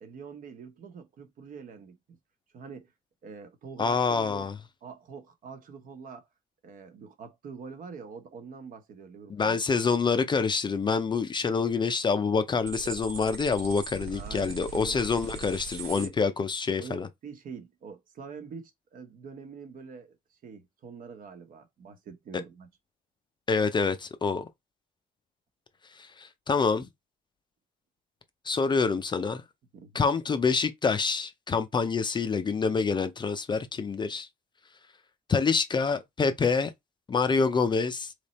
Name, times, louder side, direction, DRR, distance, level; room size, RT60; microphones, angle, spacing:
voice 1, 0.0-2.2 2.5-2.9 3.2-4.5 4.8-6.3 6.6-9.6 14.1-15.0 15.9-16.1 16.8-22.7 29.7-30.0, right 5 dB, 55° right, 1.1 m, -45 dB
voice 2, 3.8-4.6 9.3-17.1 23.5-24.5 25.9-26.9 28.4-29.4 29.9-34.3 35.3-36.7 37.1-38.1, left 5 dB, 25° left, 0.5 m, -26 dB
sound 1, 12.6-16.1, right 5 dB, 80° right, 1.5 m, -40 dB
3.4 x 3.2 x 4.1 m
cardioid pair, 110°, 17 cm